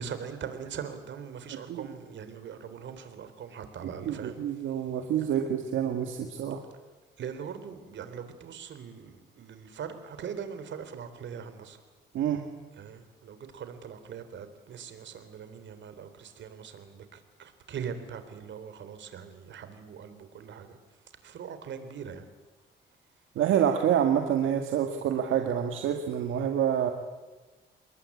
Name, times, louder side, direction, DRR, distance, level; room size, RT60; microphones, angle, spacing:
voice 1, 0.0-4.4 7.2-11.8 12.8-20.8 21.2-22.3, right 7 dB, 65° right, 10 dB, 3.8 m, -41 dB
voice 2, 3.8-6.6 12.1-12.4 23.4-26.9, right 9 dB, 85° right, 4 dB, 2.1 m, -27 dB
27.5 x 21.0 x 8.6 m, 1.2 s
cardioid pair, 90°, 20 cm